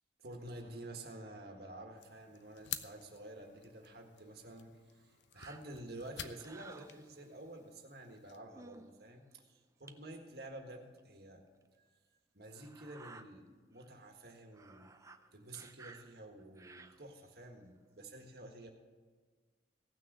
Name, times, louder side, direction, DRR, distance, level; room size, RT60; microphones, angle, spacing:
voice 1, 0.2-9.2 9.5-11.4 12.3-14.9 15.3-18.7, right 1 dB, 60° right, 3 dB, 1.6 m, -50 dB
sound 1, 2.0-8.4, left 10 dB, 75° left, 0.6 m, -50 dB
sound 2, 5.3-7.4 8.1-8.2 8.5-8.9 9.4-9.5 9.9-10.0 11.0-11.1 11.5-11.6 12.5-13.2 13.8-13.9 14.2-17.3 17.8-17.9, right 3 dB, 15° right, 0.5 m, -56 dB
16.0 x 6.2 x 6.7 m, 1.5 s
head